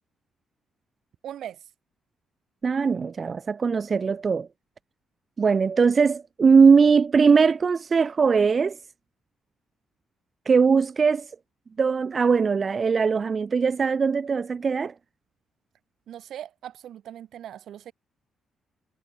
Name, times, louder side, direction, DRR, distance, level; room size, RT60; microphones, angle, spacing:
voice 1, 1.2-1.6 16.1-17.9, right 11 dB, 70° right, 1.4 m, -39 dB
voice 2, 2.6-4.5 5.4-8.8 10.5-11.3 11.8-14.9, right 5 dB, 35° right, 0.4 m, -20 dB
cardioid pair, 120°, 0 cm